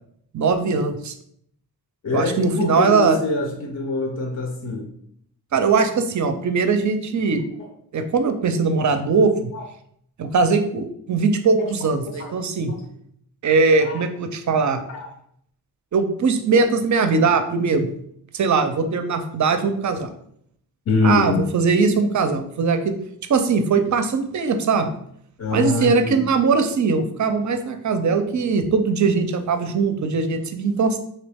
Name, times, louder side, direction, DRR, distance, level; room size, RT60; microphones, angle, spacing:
voice 1, 0.3-1.1 2.1-3.2 5.5-7.4 7.9-9.3 10.2-12.7 13.4-14.8 15.9-17.9 18.3-20.1 21.0-23.0 23.3-24.9 25.5-31.0, right 4 dB, 50° right, 8 dB, 0.5 m, -20 dB
voice 2, 2.0-4.9 7.6-7.7 9.5-9.6 11.6-11.7 12.1-12.4 12.7-12.8 13.8-14.0 14.9-15.1 20.9-21.4 25.4-26.2, left 3 dB, 45° left, 1 dB, 0.6 m, -24 dB
3.0 x 2.8 x 3.4 m, 0.69 s
wide cardioid pair, 85°, 39 cm